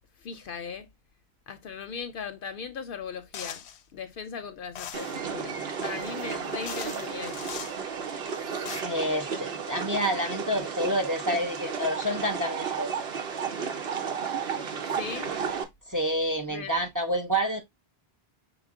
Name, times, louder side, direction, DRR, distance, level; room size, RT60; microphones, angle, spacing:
voice 1, 0.2-0.9 1.5-3.6 3.9-7.6 14.9-15.3 16.4-16.8, left 6 dB, 65° left, 0.7 m, -38 dB
sound 1, 3.3-3.8 4.7-5.2 6.2-6.3 6.7-7.8 8.4-8.8, left 8 dB, 90° left, 0.9 m, -40 dB
sound 2, 4.9-15.6, right 6 dB, 70° right, 1.0 m, -33 dB
voice 2, 8.8-12.9 15.9-17.6, equal, 20° right, 0.6 m, -28 dB
6.0 x 2.0 x 3.5 m
omnidirectional pair, 1.1 m